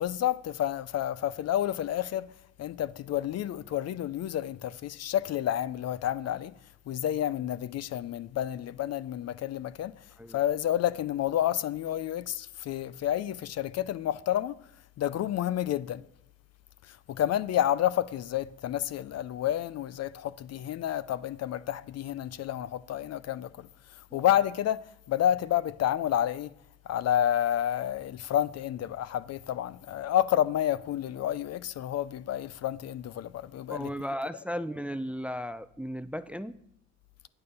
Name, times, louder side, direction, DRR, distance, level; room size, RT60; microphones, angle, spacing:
voice 1, 0.0-2.3 2.6-6.5 6.9-9.9 10.3-14.6 15.0-16.0 16.8-26.5 26.9-33.9, left 11 dB, 60° left, 0.5 m, -30 dB
voice 2, 33.7-36.6, equal, 5° right, 0.4 m, -35 dB
8.8 x 8.8 x 5.3 m
cardioid pair, 90°, 30 cm